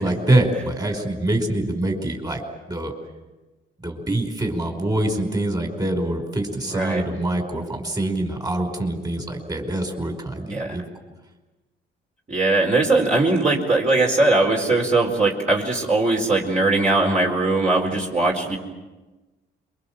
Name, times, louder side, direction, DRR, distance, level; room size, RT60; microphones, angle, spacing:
voice 1, 0.0-2.4 2.7-2.9 3.8-10.8, right 1 dB, 20° right, 4 dB, 5.0 m, -24 dB
voice 2, 6.7-7.0 10.4-10.8 12.3-18.6, right 2 dB, 35° right, -2 dB, 4.5 m, -20 dB
27.0 x 24.0 x 7.6 m, 1.2 s
cardioid pair, 90°, 20 cm